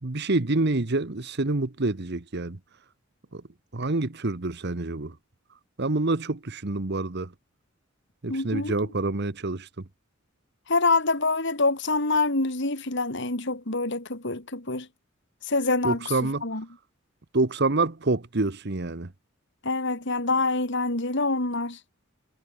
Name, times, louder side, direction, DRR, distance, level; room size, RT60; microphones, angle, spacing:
voice 1, 0.0-2.6 3.3-3.4 3.7-5.1 5.8-7.3 8.2-9.7 15.8-16.4 17.3-19.1, right 2 dB, 55° right, 1.2 m, -27 dB
voice 2, 8.3-8.7 10.7-14.9 15.4-16.7 19.6-21.8, left 3 dB, 60° left, 3.6 m, -26 dB
head